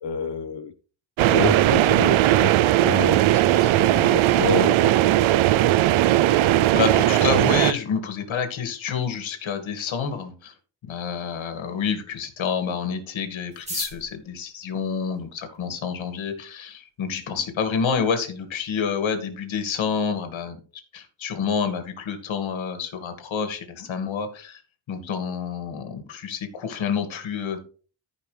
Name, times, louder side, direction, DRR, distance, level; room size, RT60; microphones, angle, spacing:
voice 1, 0.0-0.7 1.3-4.9, left 7 dB, 60° left, 9 dB, 1.2 m, -29 dB
sound 1, 1.2-7.7, right 14 dB, 85° right, 0.6 m, -18 dB
voice 2, 6.4-10.5 10.8-20.6 20.9-24.6 24.9-27.6, left 6 dB, 75° left, 7 dB, 2.2 m, -28 dB
sound 2, 13.5-15.7 16.5-16.6 16.9-17.0 17.2-17.7 18.0-18.1 18.3-18.7 19.1-19.2 19.6-19.9, right 1 dB, 15° right, 3.9 m, -37 dB
14.0 x 5.4 x 3.3 m, 0.38 s
cardioid pair, 125°, 47 cm